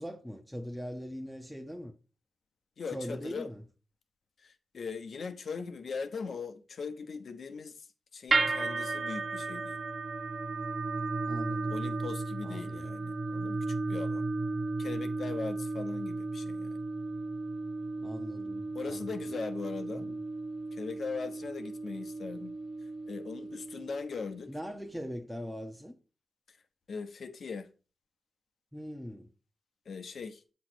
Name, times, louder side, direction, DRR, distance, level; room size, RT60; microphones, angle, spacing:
voice 1, 0.0-1.9 2.9-3.6 8.4-8.8 11.2-11.8 12.4-12.9 18.0-19.3 19.9-20.2 24.5-26.0 28.7-29.3, equal, ahead, 1.0 m, -41 dB
voice 2, 2.8-3.5 4.4-9.8 11.7-14.2 14.8-16.7 18.7-20.1 20.7-22.5 22.8-24.5 26.5-26.6 26.9-27.7 29.8-30.4, left 5 dB, 65° left, 0.9 m, -40 dB
sound 1, 8.3-24.5, right 3 dB, 50° right, 1.3 m, -34 dB
7.7 x 3.1 x 6.0 m
supercardioid pair, 45°, 0 cm